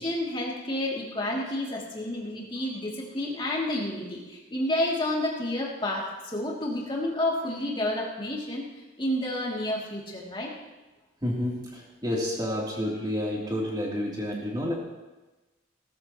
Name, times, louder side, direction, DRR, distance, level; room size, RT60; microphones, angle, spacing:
voice 1, 0.0-8.7 9.0-10.5, left 1 dB, 25° left, -3 dB, 2.7 m, -30 dB
voice 2, 11.2-14.7, left 1 dB, 20° right, -4 dB, 3.2 m, -30 dB
18.5 x 13.5 x 3.0 m, 1.1 s
head